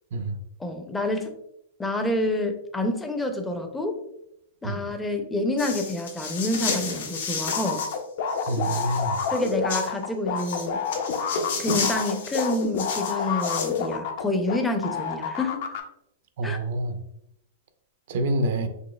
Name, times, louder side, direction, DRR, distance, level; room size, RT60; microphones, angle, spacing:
voice 1, 0.6-1.4 1.8-3.9 4.6-7.8 8.7-8.8 9.3-10.8 11.6-15.6 16.4-16.6, left 1 dB, 10° left, 5 dB, 0.4 m, -28 dB
sound 1, 5.6-8.0 8.3-9.9 10.4-13.8, left 4 dB, 80° left, 0.9 m, -32 dB
sound 2, 7.5-14.6 14.8-15.8, left 7 dB, 60° left, 0.5 m, -28 dB
voice 2, 8.5-9.2 16.4-17.0 18.1-18.7, right 2 dB, 60° right, 8 dB, 0.4 m, -27 dB
4.1 x 2.7 x 2.3 m, 0.79 s
hypercardioid pair, 145°, 0 cm